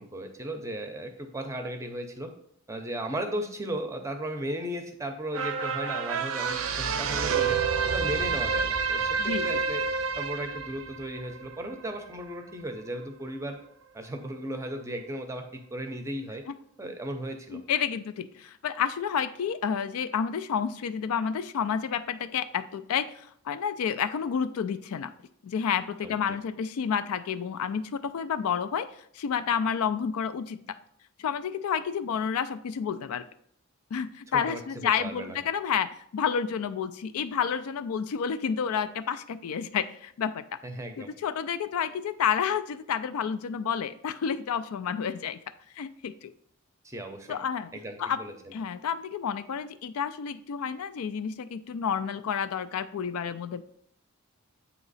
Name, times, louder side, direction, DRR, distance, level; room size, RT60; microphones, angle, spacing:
voice 1, 0.0-2.3 2.7-7.6 7.8-9.8 10.2-13.6 13.9-16.4 16.8-17.6 26.0-26.2 34.3-35.4 40.6-41.1 46.8-47.4 47.7-48.5, right 1 dB, 15° right, 5 dB, 0.6 m, -36 dB
sound 1, 5.3-12.0 12.4-12.5, right 5 dB, 65° right, 0.5 m, -29 dB
voice 2, 9.2-9.6 16.5-16.6 17.5-25.1 25.4-28.9 29.1-30.6 31.2-33.3 33.9-40.4 41.0-45.4 45.8-46.3 47.3-47.7 48.0-48.2 48.5-53.6, left 7 dB, 80° left, 12 dB, 0.4 m, -30 dB
8.1 x 2.9 x 4.0 m, 0.67 s
head